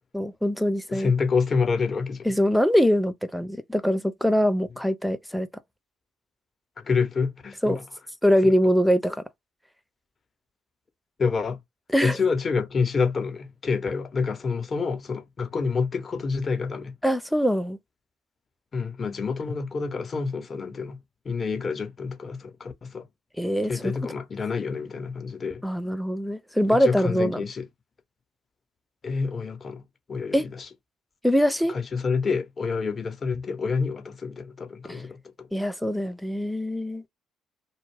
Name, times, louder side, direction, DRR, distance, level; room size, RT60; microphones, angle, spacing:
voice 1, 0.1-1.1 2.2-5.5 7.6-7.8 8.2-9.2 11.9-12.2 17.0-17.8 23.4-23.9 25.6-27.4 30.3-30.5 31.2-31.7 34.9-35.0 35.5-37.0, equal, ahead, 0.5 m, -23 dB
voice 2, 0.9-2.3 6.8-7.8 8.4-8.5 11.2-11.6 12.0-16.9 18.7-21.0 21.2-23.1 23.6-25.6 26.7-27.6 29.0-30.7 31.7-35.5, left 5 dB, 40° left, 0.7 m, -28 dB
2.3 x 2.0 x 3.3 m
hypercardioid pair, 50°, 0 cm